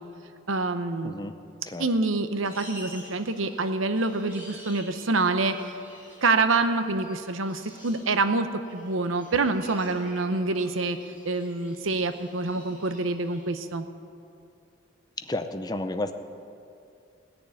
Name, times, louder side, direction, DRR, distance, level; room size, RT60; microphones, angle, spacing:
voice 1, 0.5-1.1 1.8-5.8 6.2-11.0 11.2-13.8, right 3 dB, 85° right, 9 dB, 0.9 m, -26 dB
sound 1, 2.4-13.7, equal, 10° right, 4.3 m, -50 dB
voice 2, 15.2-16.1, left 2 dB, 20° left, 8 dB, 0.6 m, -31 dB
17.5 x 6.9 x 9.6 m, 2.5 s
head